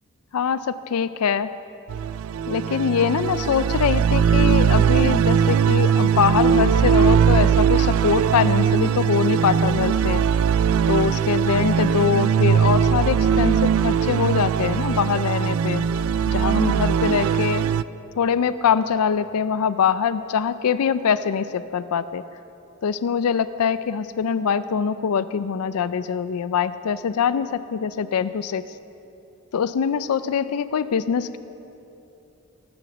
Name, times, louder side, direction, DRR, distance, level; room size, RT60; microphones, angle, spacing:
voice 1, 0.3-0.6 0.9-1.5 2.5-10.2 10.9-15.9 16.3-17.7 18.2-22.2 22.8-28.6 29.5-31.4, left 7 dB, 80° left, 14 dB, 0.4 m, -23 dB
sound 1, 1.9-17.8, right 7 dB, 70° right, 0.3 m, -20 dB
19.0 x 7.0 x 7.0 m, 2.9 s
head